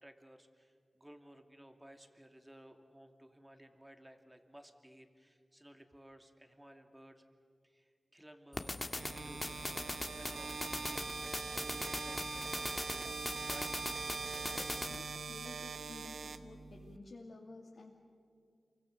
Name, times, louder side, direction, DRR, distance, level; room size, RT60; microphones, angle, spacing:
voice 1, 0.0-7.2 7.6-9.8 10.2-13.2 13.4-13.8 14.4-14.5, right 1 dB, 15° right, 5 dB, 2.6 m, -57 dB
sound 1, 8.5-15.0, left 2 dB, 30° left, 1.6 m, -41 dB
sound 2, 9.0-17.0, right 4 dB, 90° right, 1.1 m, -42 dB
voice 2, 14.9-17.9, left 3 dB, 75° left, -4 dB, 2.7 m, -52 dB
28.0 x 24.5 x 6.8 m, 2.3 s
cardioid pair, 60°, 0 cm